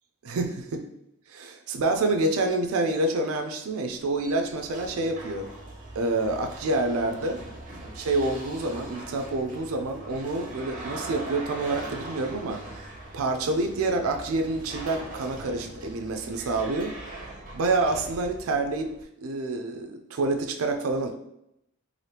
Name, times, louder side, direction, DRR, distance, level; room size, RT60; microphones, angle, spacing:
voice 1, 0.2-0.8 1.3-5.5 6.0-7.4 7.9-12.9 13.1-17.0 17.5-18.9 19.2-21.1, right 2 dB, 80° right, 5 dB, 0.4 m, -27 dB
sound 1, 3.9-19.0, right 2 dB, 40° right, 0.6 m, -41 dB
3.2 x 2.6 x 2.8 m, 0.79 s
head